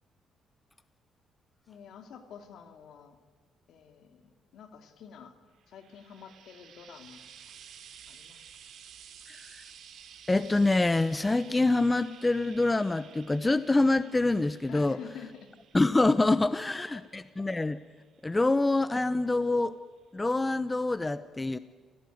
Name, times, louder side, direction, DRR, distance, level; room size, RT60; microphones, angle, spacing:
voice 1, 1.7-3.2 3.7-5.4 5.7-7.2 7.5-7.6 8.1-8.5 14.7-15.5 16.7-17.1, left 7 dB, 75° left, 7 dB, 2.7 m, -49 dB
Frying (food), 5.6-19.0 20.0-20.1, right 8 dB, 70° right, 2.6 m, -53 dB
voice 2, 9.3-9.6 10.3-15.0 15.7-17.8 18.2-19.7 20.1-21.6, left 2 dB, 20° left, 14 dB, 0.8 m, -26 dB
28.5 x 17.0 x 9.3 m, 1.5 s
cardioid pair, 90°, 0 cm